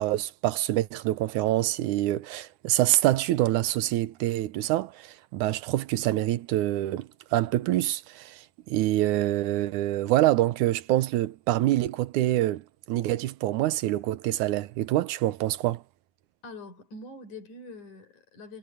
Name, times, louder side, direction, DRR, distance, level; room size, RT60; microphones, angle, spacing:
voice 1, 0.0-15.8, right 15 dB, 80° right, 2.3 m, -26 dB
voice 2, 16.4-18.6, left 2 dB, 80° left, 6.8 m, -44 dB
omnidirectional pair, 3.4 m